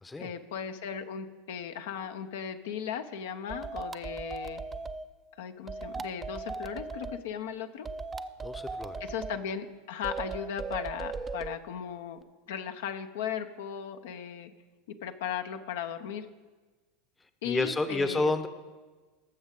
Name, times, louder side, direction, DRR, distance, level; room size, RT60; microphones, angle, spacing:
voice 1, 0.2-4.6 5.4-7.9 9.0-12.2 12.5-14.5 15.0-16.3 17.4-18.3, left 8 dB, 70° left, 7 dB, 0.7 m, -37 dB
sound 1, 3.5-5.1 5.7-7.2 7.9-9.4 10.0-11.6, right 4 dB, 20° right, 0.5 m, -37 dB
voice 2, 8.4-8.9 17.4-18.5, left 2 dB, 15° left, 11 dB, 0.8 m, -29 dB
19.0 x 7.2 x 3.7 m, 1.3 s
hypercardioid pair, 85°, 0 cm